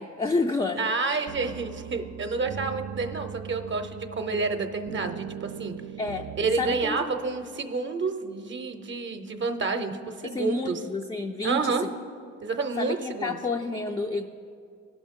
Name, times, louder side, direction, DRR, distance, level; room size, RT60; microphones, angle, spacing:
voice 1, 0.0-0.9 6.0-6.3 6.6-7.0 10.2-11.9 12.8-14.3, left 3 dB, 15° left, 3 dB, 0.4 m, -29 dB
voice 2, 0.8-5.7 6.4-10.8 11.4-11.8 12.4-13.4, right 4 dB, 40° right, 7 dB, 0.6 m, -29 dB
sound 1, 1.3-6.9, right 10 dB, 80° right, 0.5 m, -40 dB
16.0 x 6.1 x 3.6 m, 2.3 s
cardioid pair, 90°, 30 cm